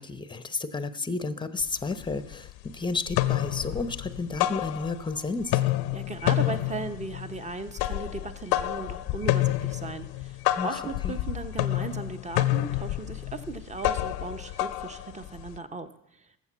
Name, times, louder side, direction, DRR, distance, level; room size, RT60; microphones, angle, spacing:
voice 1, 0.0-2.5 2.7-5.6 10.6-11.2, left 3 dB, 10° left, 12 dB, 0.9 m, -32 dB
sound 1, 1.6-1.7 2.0-2.7 3.0-5.2 5.4-15.6, left 16 dB, 60° left, 0.7 m, -29 dB
voice 2, 5.9-16.3, right 4 dB, 15° right, 9 dB, 1.1 m, -37 dB
14.0 x 7.2 x 5.7 m, 0.80 s
hypercardioid pair, 65°, 43 cm